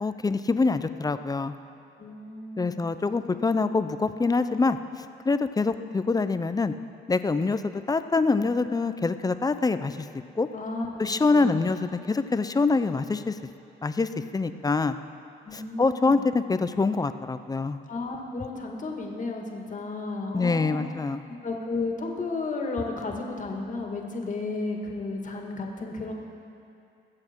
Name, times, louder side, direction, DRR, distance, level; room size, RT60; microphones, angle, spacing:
voice 1, 0.0-1.5 2.6-4.8 5.2-6.7 7.1-7.6 7.9-10.1 10.4-10.5 11.0-13.4 13.8-14.9 15.5-17.8 20.3-21.2, left 3 dB, 20° left, 11 dB, 0.5 m, -25 dB
voice 2, 2.0-2.8 10.5-11.6 15.5-16.2 17.9-20.8 21.4-26.1, left 3 dB, 40° left, 1 dB, 2.0 m, -33 dB
21.5 x 7.8 x 4.5 m, 2.6 s
cardioid pair, 90°, 20 cm